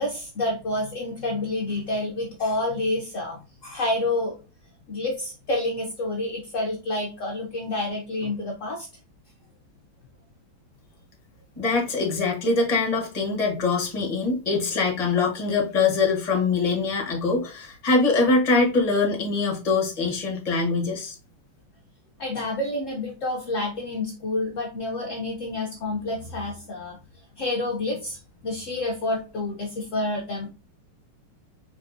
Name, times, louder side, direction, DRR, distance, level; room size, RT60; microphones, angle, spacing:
voice 1, 0.0-4.3 4.9-8.9 22.2-27.0 27.4-28.2 28.4-30.5, left 2 dB, 65° left, 0 dB, 0.8 m, -28 dB
voice 2, 11.6-21.2, left 3 dB, 25° left, 0 dB, 0.9 m, -23 dB
4.8 x 3.3 x 2.5 m, 0.33 s
omnidirectional pair, 2.3 m